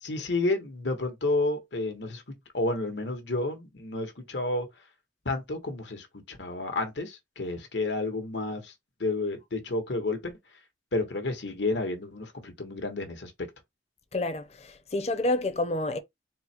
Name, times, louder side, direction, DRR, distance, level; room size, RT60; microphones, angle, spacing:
voice 1, 0.0-4.7 5.2-8.7 9.0-10.3 10.9-13.3, left 2 dB, 90° left, 1.2 m, -31 dB
voice 2, 14.1-16.0, left 2 dB, 35° left, 0.6 m, -29 dB
4.0 x 2.1 x 4.4 m
head